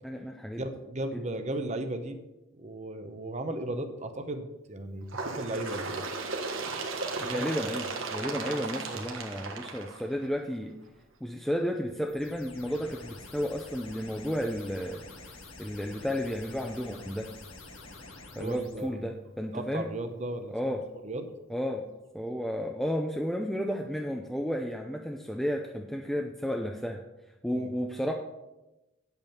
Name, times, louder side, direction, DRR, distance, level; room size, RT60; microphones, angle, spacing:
voice 1, 0.0-0.7 1.1-1.2 7.2-10.7 11.2-15.0 15.3-17.3 18.4-19.9 20.5-20.8 21.5-21.9 22.1-27.0 27.4-28.1, equal, ahead, 2 dB, 0.5 m, -32 dB
voice 2, 0.6-2.2 2.5-5.9 7.2-7.5 8.5-8.6 8.9-9.2 18.3-19.1 19.5-20.5 21.0-21.3 27.5-27.7, right 1 dB, 35° right, 7 dB, 0.9 m, -36 dB
Bird, 5.1-10.5 11.4-11.5 11.9-12.0 12.9-13.0 13.9-14.0 14.9-15.0, right 3 dB, 75° right, 1.5 m, -35 dB
sound 1, 12.1-18.9, left 3 dB, 90° left, 1.7 m, -48 dB
8.9 x 8.1 x 5.8 m, 1.0 s
head